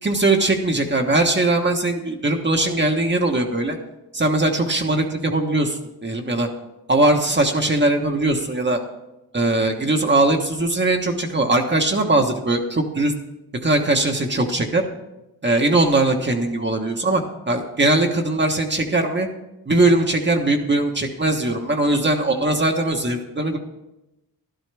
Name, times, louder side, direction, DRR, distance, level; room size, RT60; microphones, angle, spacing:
voice 1, 0.0-3.8 4.1-6.5 6.9-8.8 9.3-13.1 13.6-14.8 15.4-19.3 19.7-23.6, right 2 dB, 30° right, 2 dB, 1.1 m, -20 dB
12.5 x 12.0 x 3.4 m, 0.93 s
cardioid pair, 90°, 37 cm